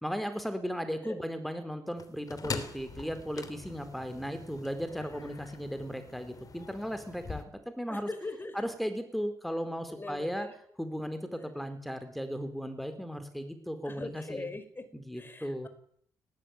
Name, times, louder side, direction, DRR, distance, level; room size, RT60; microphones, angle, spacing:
voice 1, 0.0-8.1 8.5-10.5 10.8-14.5 14.9-15.7, equal, ahead, 9 dB, 4.2 m, -36 dB
sound 1, 2.0-7.5, left 5 dB, 45° left, 3.3 m, -43 dB
voice 2, 7.9-8.7 9.9-10.5 11.3-11.7 13.8-14.9 15.1-15.7, left 2 dB, 25° left, 11 dB, 5.0 m, -41 dB
19.0 x 17.5 x 9.5 m, 0.64 s
hypercardioid pair, 45°, 8 cm